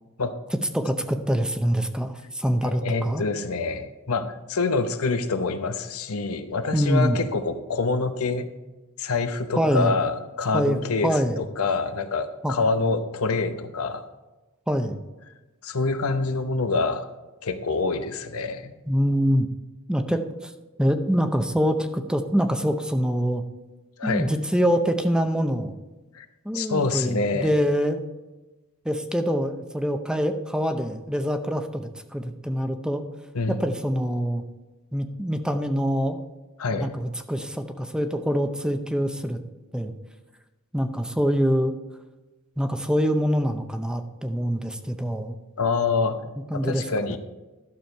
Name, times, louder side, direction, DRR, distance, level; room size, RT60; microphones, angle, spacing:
voice 1, 0.7-3.2 6.7-7.2 9.6-9.9 10.5-11.4 12.4-12.5 14.7-15.0 18.9-19.5 19.9-20.5 20.8-23.4 24.0-25.7 26.4-28.0 28.8-33.0 33.5-34.4 34.9-36.2 36.7-39.4 39.7-39.9 40.7-41.7 42.6-45.4 46.5-47.2, equal, 5° right, 8 dB, 0.6 m, -25 dB
voice 2, 2.6-8.5 9.0-14.0 15.6-17.1 17.4-18.7 24.0-24.4 26.1-26.3 26.5-27.5 33.3-33.6 36.6-37.0 45.6-46.2 46.5-47.2, left 4 dB, 70° left, 9 dB, 0.9 m, -26 dB
12.0 x 6.9 x 4.5 m, 1.1 s
head